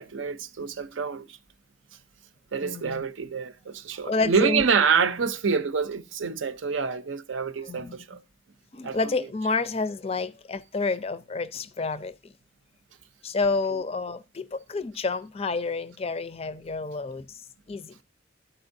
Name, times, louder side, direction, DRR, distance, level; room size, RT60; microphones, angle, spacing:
voice 1, 0.0-1.4 2.5-8.2 8.8-9.1, right 5 dB, 75° right, 0.6 m, -27 dB
voice 2, 2.6-3.0 4.0-4.7 7.6-8.2 8.7-12.3 13.2-17.4 17.7-18.0, left 3 dB, 30° left, 0.4 m, -29 dB
13.0 x 4.4 x 2.6 m
head